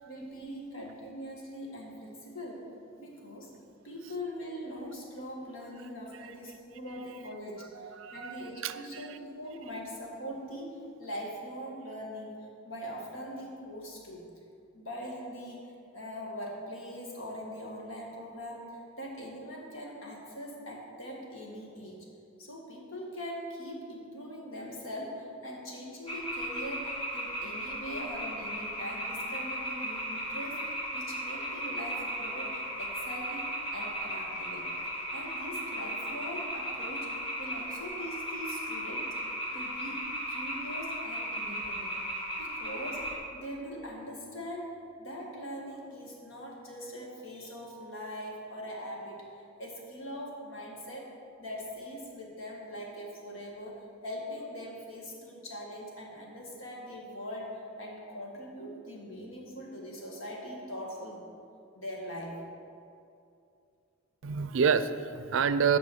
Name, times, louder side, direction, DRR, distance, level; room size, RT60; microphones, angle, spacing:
voice 1, 0.1-2.7 3.0-3.5 3.8-14.2 14.7-22.1 22.4-34.7 35.1-42.0 42.4-61.2 61.7-62.4, equal, 85° left, -2 dB, 1.9 m, -42 dB
voice 2, 7.8-9.2 64.2-65.8, right 6 dB, 70° right, 13 dB, 0.4 m, -29 dB
sound 1, 26.1-43.2, equal, 30° left, 2.1 m, -36 dB
9.0 x 6.2 x 6.4 m, 2.5 s
head